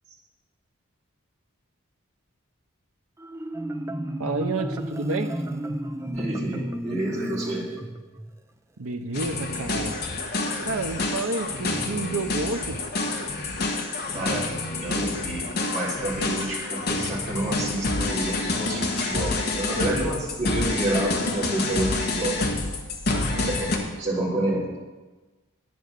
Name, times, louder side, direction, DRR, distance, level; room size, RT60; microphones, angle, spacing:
Marimba xylophone, 3.2-8.3, right 1 dB, 15° right, 0.5 m, -32 dB
voice 1, 4.2-5.3 8.8-10.0 10.6-12.8 23.1-23.5, right 3 dB, 90° right, 5 dB, 0.9 m, -30 dB
voice 2, 6.1-7.7 14.1-14.5 14.8-15.4 15.7-22.4 23.4-24.7, right 1 dB, 35° right, -5 dB, 3.5 m, -29 dB
sound 1, 9.1-23.8, left 2 dB, 45° left, 1.4 m, -28 dB
10.5 x 9.3 x 6.7 m, 1.2 s
head